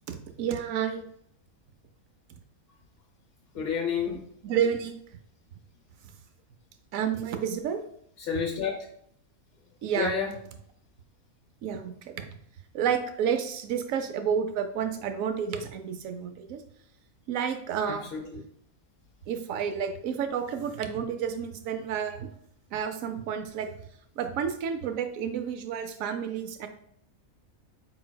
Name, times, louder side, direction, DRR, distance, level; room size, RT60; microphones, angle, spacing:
voice 1, 0.1-1.0 4.0-5.0 6.9-7.8 9.8-10.1 11.6-12.4 12.7-16.6 17.3-18.1 19.3-22.3 22.7-23.7 24.2-26.7, right 7 dB, 75° right, 7 dB, 1.0 m, -30 dB
voice 2, 3.5-4.2 8.3-8.8 10.0-10.3 17.9-18.4, left 6 dB, 55° left, 1 dB, 0.8 m, -30 dB
4.9 x 3.9 x 2.2 m, 0.69 s
omnidirectional pair, 1.5 m